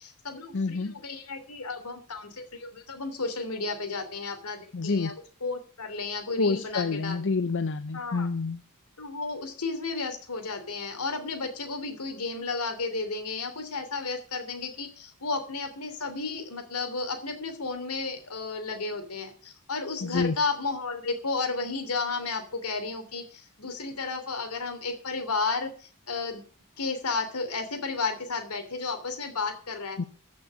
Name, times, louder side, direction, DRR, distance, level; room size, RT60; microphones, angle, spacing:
voice 1, 0.0-5.1 5.4-7.4 7.9-8.3 9.0-26.4 26.8-30.0, left 4 dB, 80° left, 7 dB, 3.1 m, -33 dB
voice 2, 0.5-0.9 4.7-5.1 6.4-8.6 20.0-20.3 30.0-30.1, left 4 dB, 55° left, 11 dB, 0.7 m, -28 dB
14.0 x 6.4 x 8.3 m, 0.42 s
head